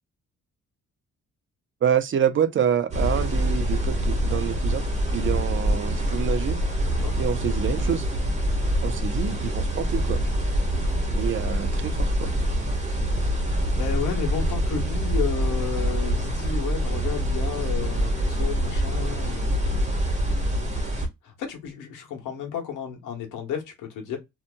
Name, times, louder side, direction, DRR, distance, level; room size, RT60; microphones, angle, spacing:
voice 1, 1.8-4.9 5.1-6.6 7.2-8.1 8.8-10.2 11.1-12.3, right 8 dB, 40° right, 0.6 m, -27 dB
sound 1, 2.9-21.1, equal, 25° right, 1.2 m, -25 dB
voice 2, 13.7-19.7 21.2-24.2, left 8 dB, 85° left, 1.2 m, -32 dB
2.8 x 2.5 x 2.2 m
cardioid pair, 90°, 30 cm